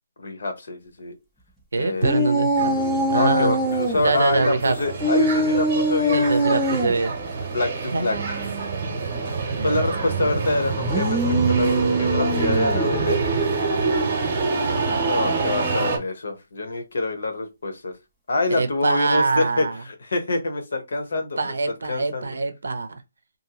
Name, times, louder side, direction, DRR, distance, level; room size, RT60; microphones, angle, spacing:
voice 1, 0.2-1.1 1.8-2.2 3.1-6.6 7.5-8.2 9.6-13.3 14.9-17.9 18.3-21.5 21.9-22.4, left 2 dB, 60° left, 0.9 m, -26 dB
voice 2, 1.7-2.7 3.1-3.5 4.0-4.7 6.1-7.1 7.9-9.0 9.6-10.6 18.5-19.8 21.1-23.0, right 3 dB, 80° right, 0.6 m, -25 dB
sound 1, 2.0-4.0 5.0-6.9 10.8-13.0, right 1 dB, ahead, 0.4 m, -23 dB
sound 2, 2.5-16.0, right 4 dB, 30° right, 0.8 m, -26 dB
2.7 x 2.6 x 2.8 m
hypercardioid pair, 180°, 0 cm